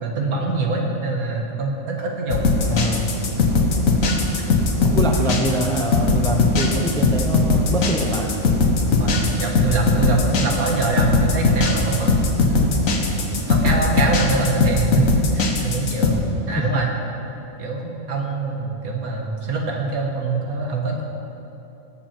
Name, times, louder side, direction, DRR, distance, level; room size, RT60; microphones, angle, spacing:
voice 1, 0.0-2.5 9.0-12.9 13.5-16.9 17.6-21.0, right 3 dB, 85° right, 0 dB, 1.9 m, -24 dB
sound 1, 2.3-16.1, left 3 dB, 65° left, 1.5 m, -19 dB
sound 2, 2.3-14.3, right 3 dB, 60° right, 1.8 m, -31 dB
voice 2, 2.7-3.1 4.8-8.3, equal, 5° left, 2 dB, 0.6 m, -25 dB
18.0 x 7.5 x 4.5 m, 3.0 s
omnidirectional pair, 1.5 m